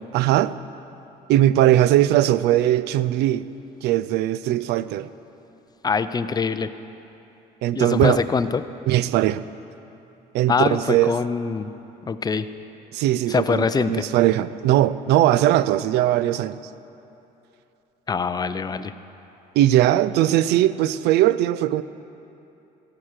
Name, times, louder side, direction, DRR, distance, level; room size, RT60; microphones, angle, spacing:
voice 1, 0.1-0.5 1.3-3.5 3.8-5.1 7.6-8.2 8.9-9.4 10.3-11.2 12.9-16.6 19.6-21.8, right 13 dB, 80° right, 15 dB, 0.4 m, -19 dB
voice 2, 5.8-6.7 7.7-8.6 10.5-11.7 12.1-12.5 13.3-14.0 18.1-18.9, left 5 dB, 25° left, 12 dB, 0.4 m, -23 dB
17.0 x 5.9 x 6.5 m, 2.9 s
cardioid pair, 110°, 17 cm